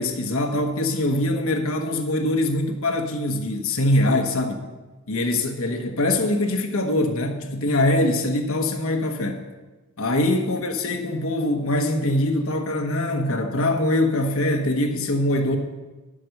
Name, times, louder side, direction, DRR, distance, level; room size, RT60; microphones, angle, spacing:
voice 1, 0.0-4.6 5.1-9.5 10.0-15.6, left 1 dB, 70° left, 4 dB, 1.3 m, -23 dB
9.7 x 7.6 x 6.5 m, 1.2 s
head